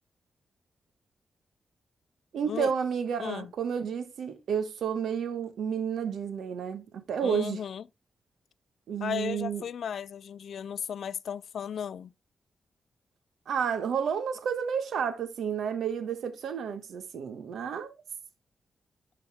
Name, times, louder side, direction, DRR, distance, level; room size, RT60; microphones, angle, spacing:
voice 1, 2.3-7.6 8.9-9.6 13.5-18.0, right 7 dB, 85° right, 1.2 m, -31 dB
voice 2, 3.2-3.5 7.2-7.8 9.0-12.1, left 8 dB, 70° left, 0.3 m, -35 dB
11.5 x 4.1 x 3.4 m
wide cardioid pair, 140°, 0 cm